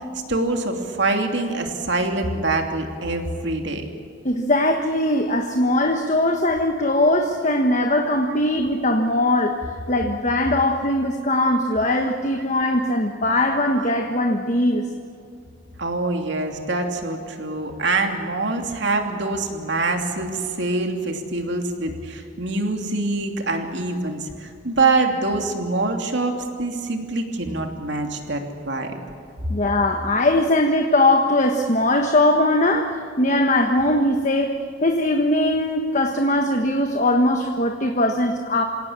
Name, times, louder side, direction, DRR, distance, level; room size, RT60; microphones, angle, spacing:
voice 1, 0.3-3.9 11.8-11.9 13.8-13.9 15.8-28.9, right 3 dB, 55° right, 3 dB, 2.9 m, -25 dB
voice 2, 4.2-9.6 9.9-14.9 29.5-38.6, left 1 dB, 35° left, 4 dB, 1.3 m, -20 dB
27.5 x 17.5 x 8.8 m, 2.4 s
head